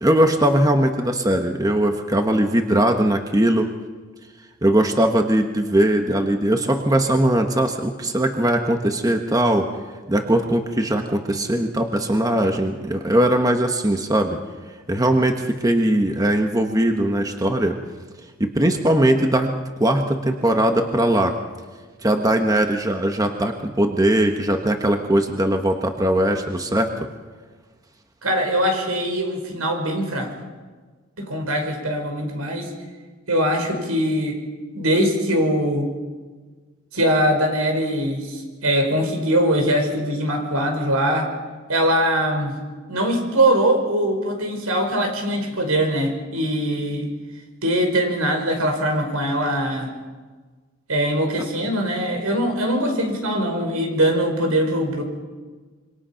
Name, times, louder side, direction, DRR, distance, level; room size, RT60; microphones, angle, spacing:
voice 1, 0.0-3.7 4.6-9.7 10.1-14.4 14.9-17.8 18.4-19.5 19.8-21.4 22.0-27.1, right 1 dB, 15° right, 4 dB, 1.3 m, -20 dB
voice 2, 28.2-30.3 31.2-32.7 33.3-34.4 34.7-35.9 36.9-41.3 41.7-42.5 42.9-47.1 47.6-49.9 50.9-55.0, equal, 85° right, 4 dB, 5.3 m, -22 dB
26.5 x 24.5 x 5.8 m, 1.4 s
head